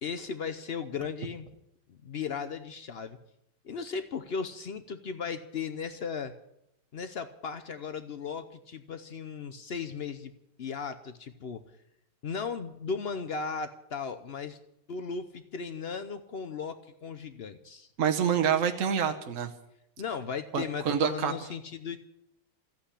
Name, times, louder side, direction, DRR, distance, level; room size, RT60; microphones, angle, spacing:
voice 1, 0.0-1.5 1.9-3.2 3.6-6.3 6.9-10.3 10.6-11.6 12.2-14.6 14.9-17.9 20.0-22.0, left 5 dB, 85° left, 10 dB, 0.5 m, -36 dB
voice 2, 18.0-19.5 20.5-21.3, right 8 dB, 50° right, 4 dB, 1.0 m, -27 dB
14.5 x 8.5 x 9.9 m, 0.81 s
omnidirectional pair, 2.2 m